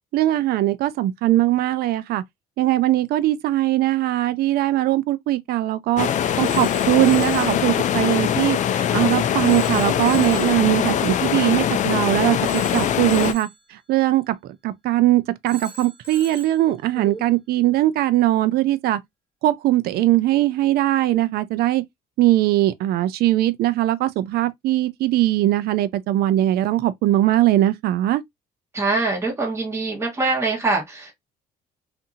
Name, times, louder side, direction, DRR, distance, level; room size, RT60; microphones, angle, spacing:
voice 1, 0.1-2.2 2.6-6.1 6.4-19.0 19.4-21.8 22.2-28.2, right 15 dB, 70° right, 0.4 m, -20 dB
sound 1, 6.0-13.3, left 10 dB, 45° left, 0.4 m, -22 dB
Telephone, 6.4-7.6 9.4-10.6 12.5-13.6 15.5-16.6, right 3 dB, 15° left, 1.3 m, -40 dB
voice 2, 28.7-31.1, right 3 dB, 15° right, 1.2 m, -24 dB
2.7 x 2.5 x 2.6 m
cardioid pair, 110°, 17 cm